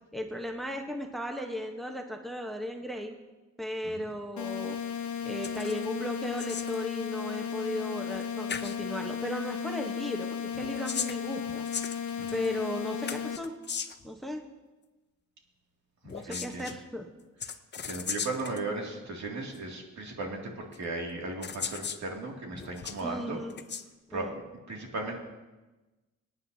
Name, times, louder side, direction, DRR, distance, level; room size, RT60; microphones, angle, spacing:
voice 1, 0.1-3.1 3.6-4.8 5.2-11.7 12.3-13.5 14.0-14.4 16.1-17.1 23.0-23.5 24.1-24.4, left 1 dB, ahead, 3 dB, 1.0 m, -36 dB
sound 1, 4.4-13.4, left 7 dB, 75° left, 1.1 m, -35 dB
sound 2, 5.4-5.9 6.1-6.8 8.1-8.2 8.5-8.8 10.5-12.5 13.1-14.1 16.0-16.8 17.4-18.6 19.5-19.6 20.7-20.8 21.4-22.0 22.5-23.0 23.5-23.8, left 6 dB, 35° left, 0.6 m, -37 dB
voice 2, 16.0-16.8 17.4-17.6 17.8-23.4 24.1-24.3 24.7-25.2, right 2 dB, 70° right, 0 dB, 2.5 m, -36 dB
25.0 x 9.6 x 2.8 m, 1.1 s
cardioid pair, 115°, 29 cm